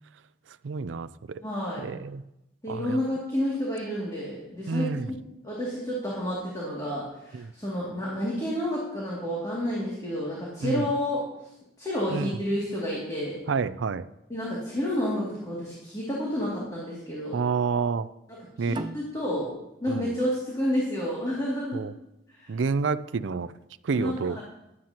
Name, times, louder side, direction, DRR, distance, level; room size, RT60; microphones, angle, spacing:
voice 1, 0.6-1.4 1.8-2.2 2.7-3.0 4.7-5.1 7.3-7.5 10.6-10.9 12.1-12.3 13.5-14.1 17.3-18.1 18.6-18.8 19.9-20.1 21.7-21.9 22.5-23.5 23.8-24.4, right 5 dB, 80° right, 14 dB, 0.4 m, -29 dB
voice 2, 1.4-1.8 2.6-5.2 5.4-11.3 11.8-13.4 14.3-17.4 18.3-19.5 19.8-21.8 22.3-22.5 23.9-24.4, equal, 20° left, -6 dB, 2.4 m, -30 dB
sound 1, 18.7-21.9, right 2 dB, 25° right, 0.5 m, -41 dB
15.0 x 11.0 x 2.9 m, 0.90 s
head